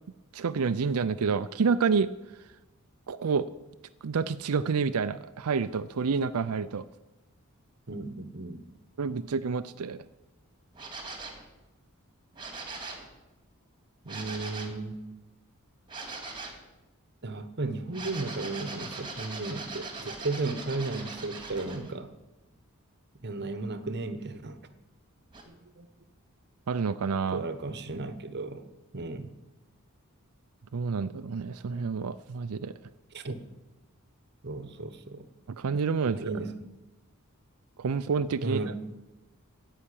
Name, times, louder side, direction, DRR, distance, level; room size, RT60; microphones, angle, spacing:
voice 1, 0.3-2.1 3.1-3.5 4.0-6.9 9.0-10.0 26.7-27.4 30.7-32.7 35.5-36.3 37.8-38.6, right 5 dB, 80° right, 11 dB, 0.5 m, -28 dB
voice 2, 7.9-8.7 14.0-15.0 17.2-22.1 23.2-24.6 25.5-25.9 27.3-28.7 28.9-29.3 33.1-33.4 34.4-35.3 36.1-36.6 38.4-38.8, right 3 dB, 50° right, 11 dB, 1.1 m, -35 dB
sound 1, 10.7-11.5 12.3-13.1 14.1-14.8 15.9-16.6 17.9-21.9 25.3-25.4, right 3 dB, 20° right, 2.3 m, -40 dB
16.0 x 5.8 x 10.0 m, 1.0 s
head